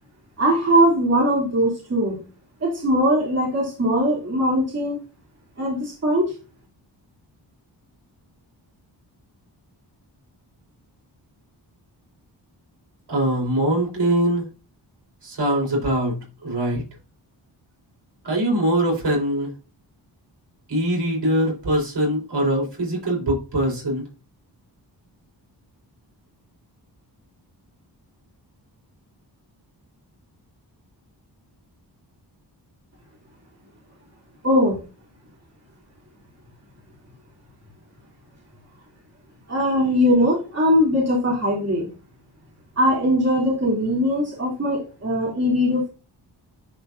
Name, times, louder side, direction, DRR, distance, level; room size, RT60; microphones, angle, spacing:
voice 1, 0.4-2.2 2.6-5.0 5.6-6.3 34.4-34.8 39.5-41.9 42.8-45.9, equal, 35° right, -3 dB, 3.2 m, -20 dB
voice 2, 13.1-14.4 15.2-16.2 16.4-16.8 18.2-19.5 20.7-24.0, right 1 dB, 65° right, -2 dB, 4.7 m, -22 dB
10.5 x 4.7 x 2.7 m, 0.32 s
wide cardioid pair, 85°, 43 cm